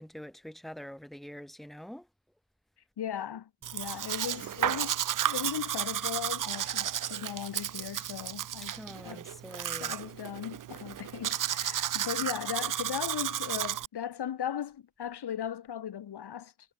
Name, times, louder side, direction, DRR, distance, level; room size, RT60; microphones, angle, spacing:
voice 1, 0.0-2.1 8.8-10.0, equal, ahead, 2.7 m, -45 dB
voice 2, 3.0-5.0 5.2-9.2 9.8-16.5, left 9 dB, 85° left, 3.9 m, -37 dB
Domestic sounds home sounds, 3.6-13.9, right 11 dB, 55° right, 0.6 m, -33 dB
wide cardioid pair, 110°, 39 cm